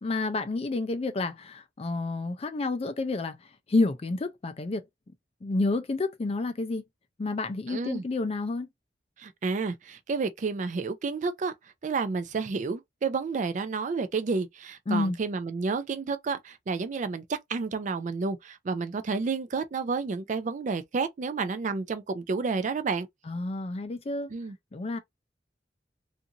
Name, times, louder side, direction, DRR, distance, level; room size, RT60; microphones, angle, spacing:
voice 1, 0.0-3.4 3.7-4.8 5.4-6.8 7.2-8.7 14.9-15.2 23.3-24.3 24.7-25.0, left 3 dB, 35° left, 0.4 m, -29 dB
voice 2, 7.7-8.0 9.2-11.5 11.8-23.1 24.3-24.6, right 4 dB, 45° right, 0.4 m, -30 dB
2.5 x 2.5 x 2.7 m
head